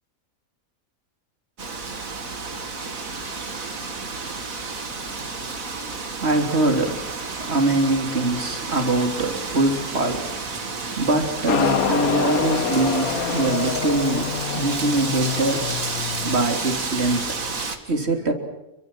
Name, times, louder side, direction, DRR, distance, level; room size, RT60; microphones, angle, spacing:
Wind, 1.6-17.8, right 4 dB, 75° right, 2.7 m, -31 dB
voice 1, 5.0-7.0 7.4-10.3 11.0-15.7 16.2-17.5 17.9-18.3, right 2 dB, 50° right, 4 dB, 3.7 m, -23 dB
Motorcycle, 11.5-16.5, left 7 dB, 90° left, 1.6 m, -26 dB
28.5 x 24.0 x 7.6 m, 0.94 s
omnidirectional pair, 1.5 m